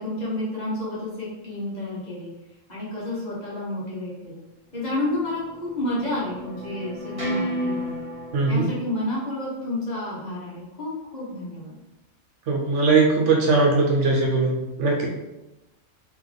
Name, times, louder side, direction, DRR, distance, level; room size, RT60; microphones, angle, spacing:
voice 1, 0.0-2.3 2.7-4.4 4.7-8.0 8.4-11.8, left 1 dB, 35° left, -8 dB, 1.2 m, -30 dB
sound 1, 5.0-8.5, equal, 25° right, 1.3 m, -32 dB
voice 2, 8.3-8.7 12.5-15.1, right 3 dB, 65° right, -1 dB, 1.0 m, -20 dB
3.3 x 3.0 x 3.9 m, 0.98 s
omnidirectional pair, 1.4 m